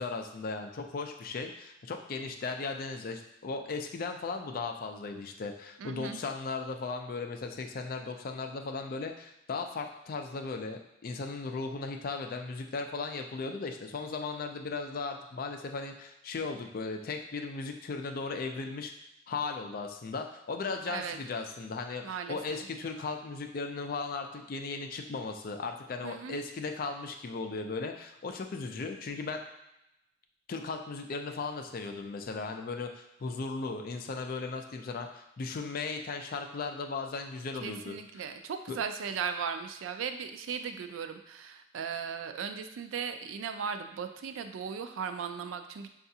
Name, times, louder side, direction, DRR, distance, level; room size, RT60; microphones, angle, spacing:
voice 1, 0.0-18.9 19.3-22.0 22.3-29.4 30.5-38.3 38.7-38.8, left 4 dB, 45° left, 4 dB, 0.4 m, -37 dB
voice 2, 5.8-6.2 20.9-21.2 22.0-22.7 26.0-26.4 37.6-45.9, right 6 dB, 85° right, 8 dB, 0.3 m, -37 dB
5.5 x 2.4 x 2.7 m, 0.88 s
head